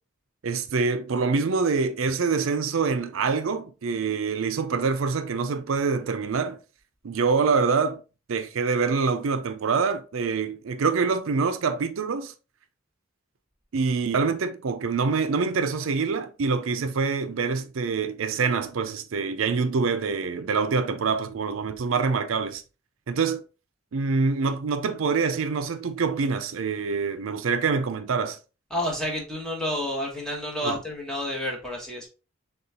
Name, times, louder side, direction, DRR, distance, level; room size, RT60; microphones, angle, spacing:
voice 1, 0.4-6.6 7.0-8.0 8.3-12.3 13.7-22.6 23.1-23.4 23.9-28.4 30.6-30.8, right 5 dB, 80° right, 0.5 m, -25 dB
voice 2, 28.7-32.1, left 1 dB, 5° left, 1.2 m, -30 dB
6.7 x 2.4 x 2.8 m
head